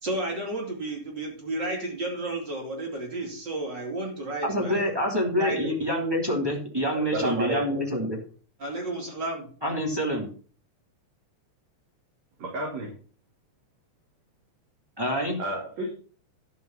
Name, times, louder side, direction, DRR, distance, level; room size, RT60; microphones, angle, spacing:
voice 1, 0.0-4.9 5.4-5.8 8.6-9.5, right 2 dB, 35° right, -1 dB, 4.0 m, -32 dB
voice 2, 4.5-8.2 9.6-10.3 15.0-15.4, equal, 10° right, -2 dB, 2.4 m, -26 dB
voice 3, 6.9-7.8 12.4-12.9 15.4-15.9, right 2 dB, 60° right, -3 dB, 4.0 m, -31 dB
12.5 x 5.5 x 5.8 m, 0.41 s
omnidirectional pair, 3.4 m